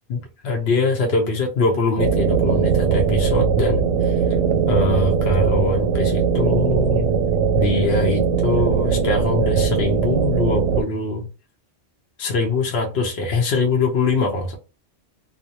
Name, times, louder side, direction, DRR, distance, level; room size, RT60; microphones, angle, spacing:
voice 1, 0.1-4.2 4.7-7.1 7.6-11.3 12.2-14.6, left 3 dB, 65° left, 0.8 m, -23 dB
sound 1, 2.0-10.8, right 6 dB, 90° right, 0.9 m, -20 dB
2.4 x 2.1 x 2.7 m
omnidirectional pair, 1.2 m